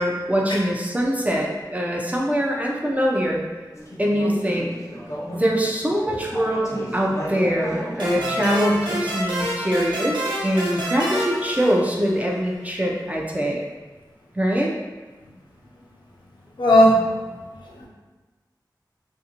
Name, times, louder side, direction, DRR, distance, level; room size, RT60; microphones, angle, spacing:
voice 1, 0.0-3.4 4.0-4.7 5.3-13.6 14.4-14.7, equal, 20° right, -2 dB, 0.5 m, -23 dB
Conversation / Chatter, 3.7-9.1, equal, 40° left, 0.6 m, -35 dB
sound 1, 8.0-12.4, equal, 85° right, 0.8 m, -28 dB
voice 2, 16.6-17.3 17.7-17.9, equal, 90° left, -4 dB, 0.6 m, -17 dB
2.6 x 2.5 x 2.8 m, 1.3 s
wide cardioid pair, 50°, 8 cm